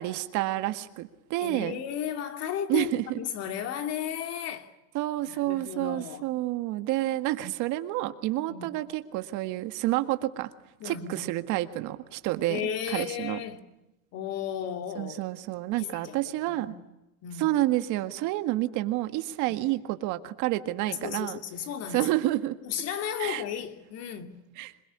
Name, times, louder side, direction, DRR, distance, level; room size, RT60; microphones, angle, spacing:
voice 1, 0.0-1.8 2.7-3.2 4.9-10.5 10.8-12.6 12.9-13.4 15.0-16.7 17.4-21.4 21.9-22.6 23.2-23.4 24.6-24.7, right 16 dB, 50° right, 1.8 m, -29 dB
voice 2, 1.4-4.7 5.2-6.3 8.3-8.7 10.8-11.3 12.5-13.6 14.1-15.3 15.8-16.8 17.2-17.6 19.4-19.5 20.9-22.2 22.6-24.5, left 9 dB, 40° left, 2.7 m, -35 dB
27.0 x 21.5 x 10.0 m
supercardioid pair, 150°, 40 cm